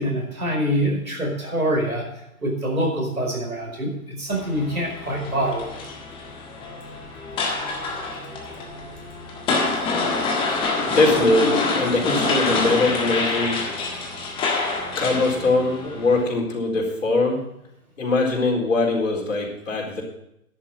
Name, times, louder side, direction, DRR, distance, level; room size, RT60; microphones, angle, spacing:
voice 1, 0.0-2.0 2.4-5.6, right 1 dB, 75° right, 0 dB, 4.9 m, -25 dB
sound 1, 4.3-16.2, left 3 dB, 10° left, 1.6 m, -26 dB
voice 2, 10.9-13.6 15.0-17.4 18.0-20.0, left 2 dB, 60° left, 0 dB, 4.1 m, -21 dB
10.5 x 8.7 x 7.6 m, 0.80 s
figure-of-eight pair, 130°, 43 cm